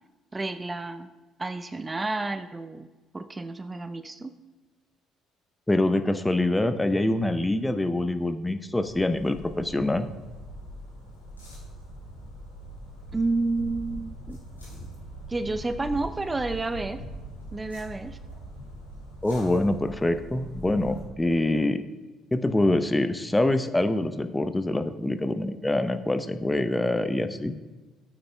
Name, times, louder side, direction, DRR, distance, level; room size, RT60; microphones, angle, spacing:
voice 1, 0.3-1.1 1.4-2.9 3.1-4.4 13.1-14.4 15.3-17.0 17.5-18.2, right 3 dB, 20° right, 11 dB, 0.5 m, -30 dB
voice 2, 5.7-10.1 19.2-21.8 22.3-27.6, left 1 dB, 10° left, 10 dB, 0.7 m, -25 dB
sound 1, 8.8-21.0, equal, 90° left, 2.8 m, -42 dB
17.0 x 8.7 x 2.3 m, 1.3 s
figure-of-eight pair, 50°, 0 cm